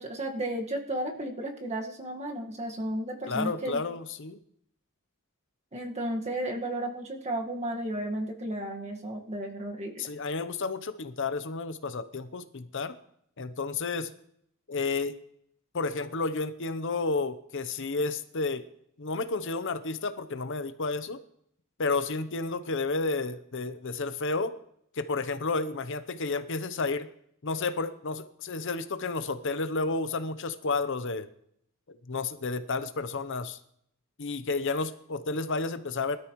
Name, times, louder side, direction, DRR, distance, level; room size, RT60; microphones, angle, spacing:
voice 1, 0.0-3.8 5.7-10.0, right 1 dB, 30° right, 2 dB, 1.7 m, -33 dB
voice 2, 3.3-4.4 10.0-13.0 13.4-14.1 14.7-15.2 15.7-18.6 19.0-21.2 21.8-24.6 25.0-27.1 27.4-31.3 31.9-33.6 34.2-36.2, left 3 dB, 60° left, 11 dB, 0.8 m, -31 dB
20.5 x 13.0 x 3.1 m, 0.71 s
head